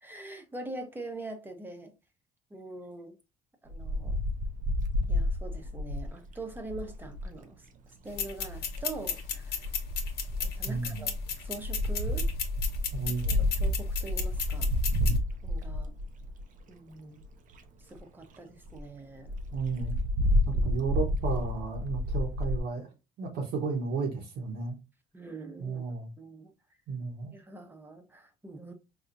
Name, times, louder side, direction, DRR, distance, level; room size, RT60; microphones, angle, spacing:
voice 1, 0.0-1.9 2.5-3.2 3.6-4.2 5.1-7.6 8.0-9.7 10.4-11.1 11.4-12.3 13.5-14.7 15.4-15.9 16.7-17.2 17.8-19.3 20.5-20.7 25.1-25.8 26.2-26.5 27.3-28.7, right 2 dB, 10° right, 0.8 m, -43 dB
Wind, 3.7-7.3 8.4-8.9 9.6-16.6 17.2-17.3 17.5-17.6 18.0-18.1 18.3-18.4 18.7-18.8 19.3-22.6, left 1 dB, 50° right, 0.6 m, -30 dB
sound 1, 8.1-15.2, left 6 dB, 70° left, 0.9 m, -35 dB
voice 2, 10.7-11.1 12.9-13.4 19.5-20.0 20.5-22.9 23.2-24.7 25.6-26.1 26.9-27.3, right 4 dB, 75° right, 1.0 m, -33 dB
4.3 x 2.4 x 2.5 m
cardioid pair, 110°, 17 cm